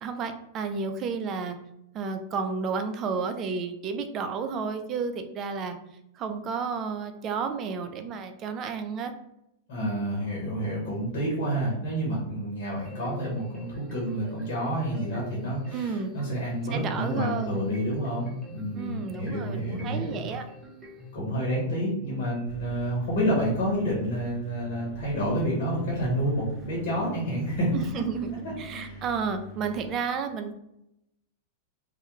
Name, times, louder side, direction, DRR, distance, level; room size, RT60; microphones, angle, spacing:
voice 1, 0.0-1.6 1.9-5.8 6.1-9.1 15.7-16.1 16.7-17.7 18.7-20.4 27.7-30.5, right 5 dB, 35° right, 7 dB, 0.3 m, -31 dB
voice 2, 9.7-20.3 21.1-27.7 28.7-29.0, equal, 65° left, -4 dB, 0.9 m, -29 dB
sound 1, 12.9-21.1, equal, 15° right, 0.7 m, -46 dB
sound 2, 22.4-29.9, right 1 dB, 15° left, 0.8 m, -44 dB
2.2 x 2.1 x 3.0 m, 0.83 s
hypercardioid pair, 115°, 0 cm